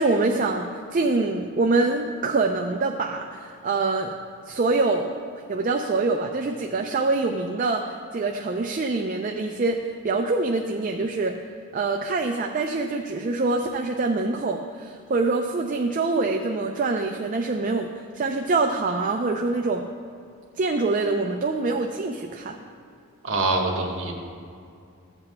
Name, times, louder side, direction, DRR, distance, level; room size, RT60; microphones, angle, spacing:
voice 1, 0.0-4.2 4.5-5.1 5.5-11.4 11.7-19.8 20.6-22.6, right 3 dB, 40° right, 3 dB, 0.4 m, -25 dB
voice 2, 23.2-24.1, right 2 dB, 70° right, 0 dB, 1.3 m, -24 dB
14.5 x 7.9 x 2.2 m, 2.4 s
head